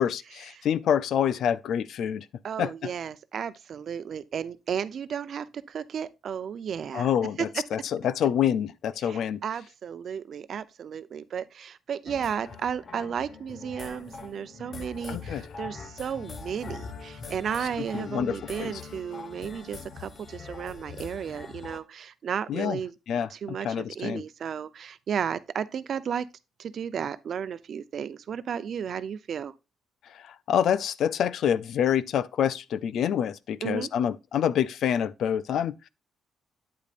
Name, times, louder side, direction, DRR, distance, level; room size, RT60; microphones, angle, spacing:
voice 1, 0.0-2.3 2.6-2.9 6.9-9.4 15.1-15.4 17.9-18.8 22.5-22.8 23.1-24.2 30.1-35.9, left 9 dB, 70° left, 0.5 m, -27 dB
voice 2, 2.4-7.1 7.4-7.8 9.0-22.9 23.3-26.3 26.6-29.5 33.6-33.9, right 7 dB, 60° right, 0.7 m, -33 dB
sound 1, 12.1-21.8, left 5 dB, 45° left, 1.3 m, -42 dB
8.8 x 8.4 x 2.5 m
cardioid pair, 90°, 0 cm